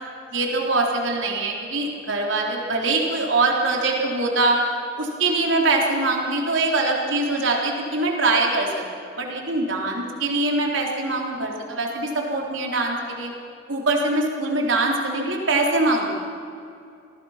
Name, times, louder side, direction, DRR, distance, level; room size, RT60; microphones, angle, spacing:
voice 1, 0.3-4.6 5.0-8.8 9.2-13.3 13.7-16.2, right 2 dB, 80° right, 0 dB, 3.9 m, -23 dB
29.0 x 19.5 x 5.9 m, 2.5 s
head